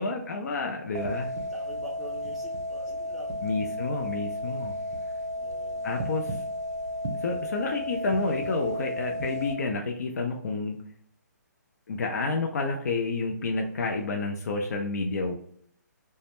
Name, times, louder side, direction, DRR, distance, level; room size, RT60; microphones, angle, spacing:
voice 1, 0.0-1.3 3.4-4.8 5.8-6.4 7.2-10.8 11.9-15.3, left 3 dB, 60° left, 3 dB, 0.4 m, -29 dB
sound 1, 0.9-9.5, left 1 dB, 60° right, 0.5 m, -33 dB
voice 2, 1.5-3.5 5.4-6.3, right 1 dB, 5° right, -2 dB, 0.4 m, -46 dB
2.2 x 2.0 x 2.9 m, 0.64 s
figure-of-eight pair, 140°, 10 cm